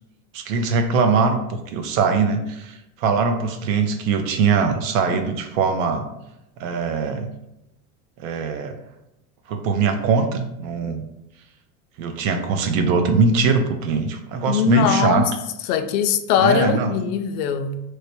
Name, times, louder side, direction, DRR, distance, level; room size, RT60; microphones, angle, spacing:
voice 1, 0.3-6.1 6.6-7.3 8.2-8.8 9.5-11.1 12.0-15.3 16.4-16.9, right 5 dB, 60° right, 0.6 m, -21 dB
voice 2, 14.5-15.3 15.7-17.8, left 8 dB, 85° left, 0.5 m, -21 dB
3.2 x 2.1 x 4.1 m
supercardioid pair, 160°, 44 cm